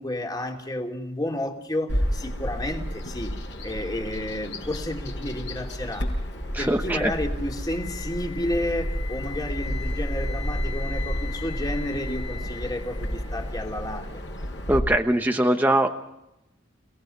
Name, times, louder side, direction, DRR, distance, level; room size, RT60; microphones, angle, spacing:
voice 1, 0.0-3.3 3.6-6.1 6.6-14.2, left 1 dB, 20° left, 2.8 m, -31 dB
Bird vocalization bird call bird song, 1.9-14.8, equal, 65° left, 6.2 m, -31 dB
voice 2, 6.5-7.1 14.7-15.9, right 1 dB, 10° right, 1.0 m, -22 dB
Wind instrument woodwind instrument, 7.6-13.6, left 8 dB, 45° right, 2.3 m, -41 dB
30.0 x 18.0 x 5.4 m
head